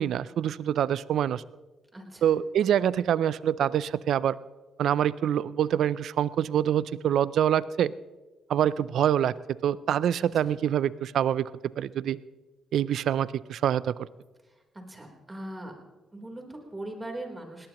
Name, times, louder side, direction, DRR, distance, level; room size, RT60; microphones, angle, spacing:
voice 1, 0.0-1.4 2.2-4.4 4.8-7.9 8.5-9.3 9.6-11.5 11.8-12.2 12.7-13.9, right 10 dB, 75° right, 19 dB, 0.4 m, -25 dB
voice 2, 1.9-2.3 10.3-10.5 14.4-15.7 16.1-17.7, right 1 dB, 20° right, 2 dB, 3.7 m, -40 dB
20.0 x 18.0 x 3.0 m, 1.2 s
cardioid pair, 80°, 0 cm